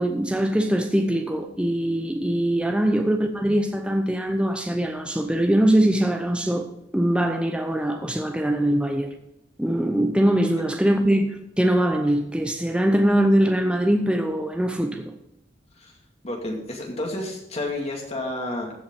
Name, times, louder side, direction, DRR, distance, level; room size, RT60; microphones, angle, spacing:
voice 1, 0.0-9.1 9.6-15.1, right 1 dB, 5° right, 4 dB, 0.7 m, -22 dB
voice 2, 16.2-18.7, left 1 dB, 35° left, 0 dB, 2.3 m, -30 dB
15.0 x 5.5 x 5.3 m, 0.83 s
head